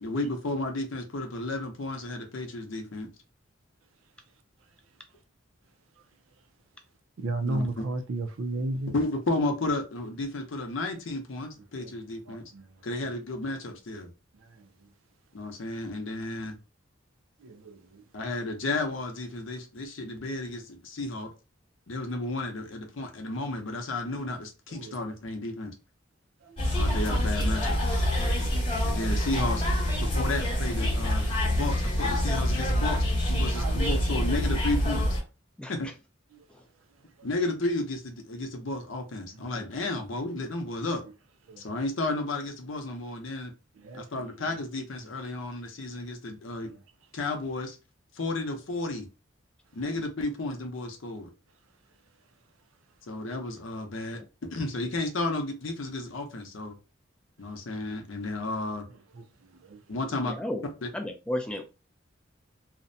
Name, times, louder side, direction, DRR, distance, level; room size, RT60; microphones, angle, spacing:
voice 1, 0.0-3.1 7.5-7.8 8.9-12.4 12.8-14.1 15.3-16.6 18.1-21.3 21.9-25.7 26.7-27.8 28.8-29.6 30.0-35.2 35.7-35.9 37.2-41.0 41.6-43.5 43.9-46.7 47.1-47.8 48.1-49.1 49.7-51.3 53.1-54.2 54.5-56.7 57.4-58.8 59.9-60.3 60.8-60.9, left 2 dB, 75° left, 0.6 m, -32 dB
voice 2, 7.2-8.9 11.8-11.9 17.4-17.5 24.8-24.9 33.6-33.7 43.8-44.0, right 2 dB, 85° right, 0.4 m, -31 dB
sound 1, 26.6-35.2, equal, 25° left, 0.8 m, -26 dB
voice 3, 60.2-60.6 60.9-61.6, left 1 dB, 5° left, 0.3 m, -32 dB
2.5 x 2.1 x 2.6 m
head